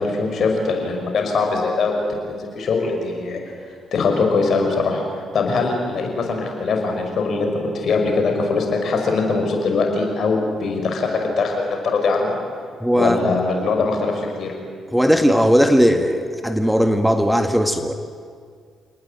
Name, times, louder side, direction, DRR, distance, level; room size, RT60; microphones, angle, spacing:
voice 1, 0.0-2.0 2.3-3.4 3.9-7.5 7.7-12.4 12.9-14.5, left 4 dB, 55° left, 2 dB, 5.9 m, -21 dB
voice 2, 12.8-13.4 14.9-17.9, equal, ahead, 7 dB, 1.7 m, -17 dB
28.0 x 19.0 x 8.9 m, 2.1 s
hypercardioid pair, 45°, 0 cm